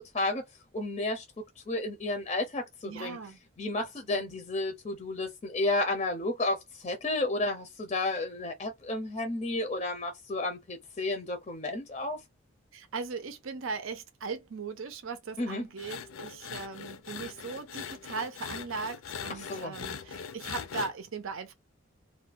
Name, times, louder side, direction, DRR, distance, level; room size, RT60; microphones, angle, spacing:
voice 1, 0.7-1.2 1.6-3.2 3.6-12.2 15.4-15.7 19.3-19.7, left 2 dB, 30° left, 0.5 m, -32 dB
voice 2, 2.9-3.4 4.1-4.4 12.7-21.5, right 4 dB, 80° right, 0.6 m, -38 dB
sound 1, 15.8-20.9, left 7 dB, 80° left, 0.5 m, -41 dB
2.5 x 2.2 x 3.7 m
head